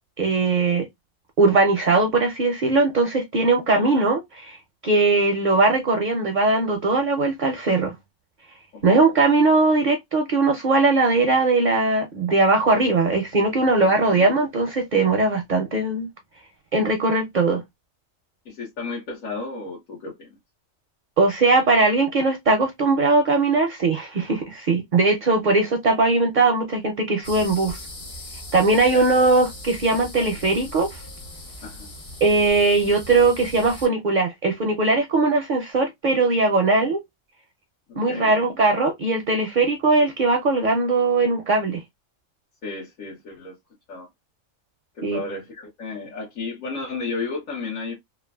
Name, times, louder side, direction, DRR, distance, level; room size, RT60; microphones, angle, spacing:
voice 1, 0.2-0.9 1.4-7.9 8.8-16.1 16.7-17.6 21.2-27.8 28.5-31.0 32.2-37.0 38.0-41.8 45.0-45.2, right 3 dB, 55° right, 0.5 m, -20 dB
voice 2, 18.4-20.4 28.9-29.2 31.6-31.9 37.9-38.3 42.6-43.6 43.9-44.1 45.0-47.9, left 3 dB, 90° left, 1.4 m, -33 dB
sound 1, 27.2-33.9, left 1 dB, 35° left, 0.7 m, -39 dB
3.1 x 2.4 x 2.2 m
omnidirectional pair, 1.3 m